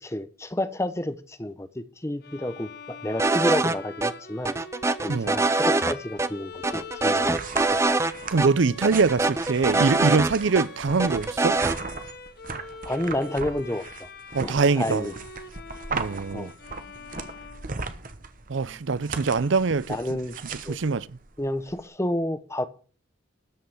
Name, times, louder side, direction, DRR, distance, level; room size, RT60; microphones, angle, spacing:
voice 1, 0.0-4.5 5.0-7.4 7.7-7.8 12.9-14.1 14.4-15.1 16.3-16.5 19.9-20.4 20.6-20.8 21.4-22.7, left 1 dB, 15° left, 0.7 m, -30 dB
Bowed string instrument, 2.2-18.3, left 4 dB, 50° left, 1.2 m, -44 dB
sound 1, 3.2-3.8 4.0-4.1 4.5-5.9 6.2-6.3 6.6-8.1 8.4-8.5 8.8-10.7 11.0-11.8, right 3 dB, 15° right, 0.4 m, -23 dB
sound 2, 6.5-21.8, right 4 dB, 40° right, 1.0 m, -38 dB
voice 2, 8.3-11.6 14.3-15.1 15.9-16.5 18.5-20.0 20.7-21.2, right 4 dB, 65° right, 0.5 m, -23 dB
13.0 x 5.5 x 7.8 m
head